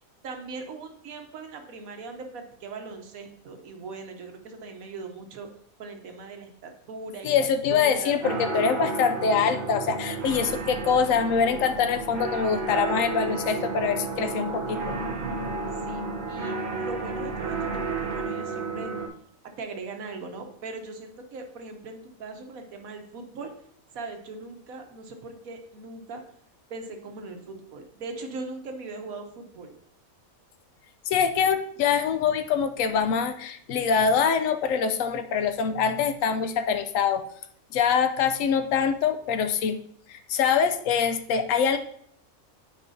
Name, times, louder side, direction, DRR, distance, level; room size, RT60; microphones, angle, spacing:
voice 1, 0.2-5.5 5.8-8.2 15.8-18.9 19.6-23.5 23.9-26.2 26.7-29.7, right 3 dB, 80° right, 5 dB, 1.3 m, -40 dB
voice 2, 7.2-14.8 31.1-37.2 37.7-39.8 40.1-41.8, left 6 dB, 70° left, 9 dB, 1.0 m, -24 dB
sound 1, 8.2-19.1, right 3 dB, 55° right, 1.2 m, -32 dB
9.0 x 5.1 x 2.7 m, 0.64 s
omnidirectional pair, 1.5 m